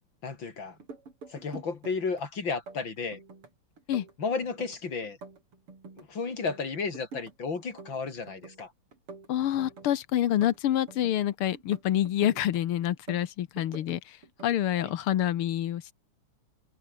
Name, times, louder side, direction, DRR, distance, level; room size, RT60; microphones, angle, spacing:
voice 1, 0.2-0.7 1.3-3.2 4.2-5.2 6.0-8.7 14.8-14.9, left 4 dB, 60° left, 4.0 m, -33 dB
sound 1, 0.7-2.2 2.5-3.5 3.8-6.1 6.3-7.3 7.6-8.7 8.9-11.2 11.5-12.6 12.9-14.0 14.2-14.6, right 4 dB, 90° right, 5.7 m, -46 dB
voice 2, 9.3-14.0 14.4-15.9, left 12 dB, 80° left, 2.0 m, -27 dB
omnidirectional pair, 2.4 m